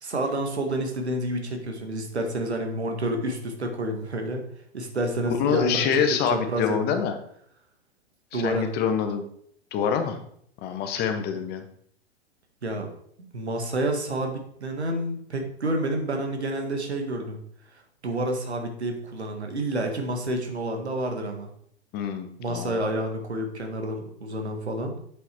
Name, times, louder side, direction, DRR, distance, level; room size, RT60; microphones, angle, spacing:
voice 1, 0.0-4.4 4.7-6.0 6.3-7.0 8.3-8.7 12.6-12.9 13.3-17.4 18.0-21.5 22.4-24.9, right 1 dB, 80° right, 4 dB, 1.9 m, -29 dB
voice 2, 5.4-7.2 8.3-9.2 9.7-10.2 10.6-11.6 21.9-22.8, left 7 dB, 30° left, 8 dB, 1.1 m, -26 dB
7.9 x 5.9 x 4.5 m, 0.66 s
figure-of-eight pair, 105°, 33 cm